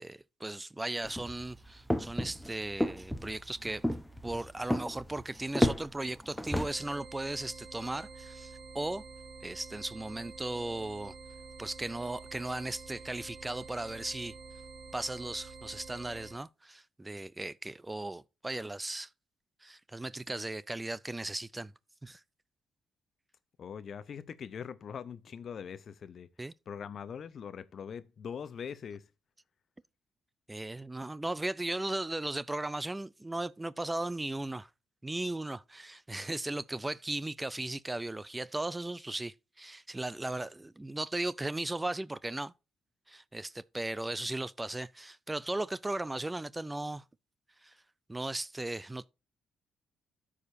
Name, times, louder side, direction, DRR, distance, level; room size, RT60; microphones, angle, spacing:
voice 1, 0.0-3.9 4.2-9.0 9.4-11.1 11.6-14.3 14.9-19.1 19.6-21.7 22.0-22.2 26.4-26.5 30.5-34.7 35.0-42.5 43.1-47.0 47.6-47.7 48.1-49.1, right 2 dB, 15° right, 0.4 m, -37 dB
sound 1, 1.0-6.7, left 1 dB, ahead, 0.9 m, -33 dB
sound 2, 6.5-16.4, right 4 dB, 50° right, 3.0 m, -48 dB
voice 2, 23.6-26.3 26.7-29.0, left 7 dB, 55° left, 0.6 m, -42 dB
13.0 x 5.0 x 2.7 m
cardioid pair, 90°, 0 cm